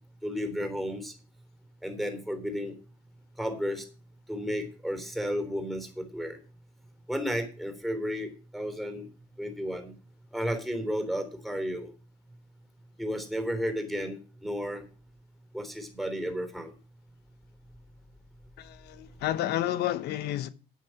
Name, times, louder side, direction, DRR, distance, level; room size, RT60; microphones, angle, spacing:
voice 1, 0.2-1.1 1.8-2.7 3.4-3.8 4.3-6.4 7.1-9.1 9.4-9.9 10.3-11.9 13.0-14.9 15.5-16.7, equal, ahead, 3.6 m, -33 dB
voice 2, 18.6-20.5, left 12 dB, 75° left, 0.9 m, -30 dB
9.5 x 9.3 x 6.0 m
cardioid pair, 110°, 17 cm